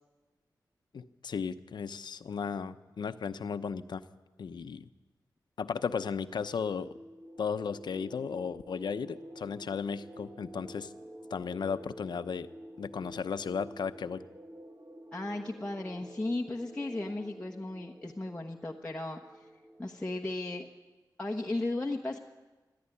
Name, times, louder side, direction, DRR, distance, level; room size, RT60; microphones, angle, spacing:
voice 1, 0.9-4.0 4.4-4.9 5.6-6.9 7.4-10.9 11.3-12.5 12.8-14.2, left 6 dB, 90° left, 11 dB, 0.9 m, -35 dB
sound 1, 6.0-20.4, equal, 35° right, 1.7 m, -50 dB
voice 2, 15.1-19.5 19.8-20.6 21.2-22.2, left 2 dB, 15° left, -1 dB, 1.2 m, -35 dB
22.0 x 13.5 x 10.0 m, 1.2 s
wide cardioid pair, 145°, 7 cm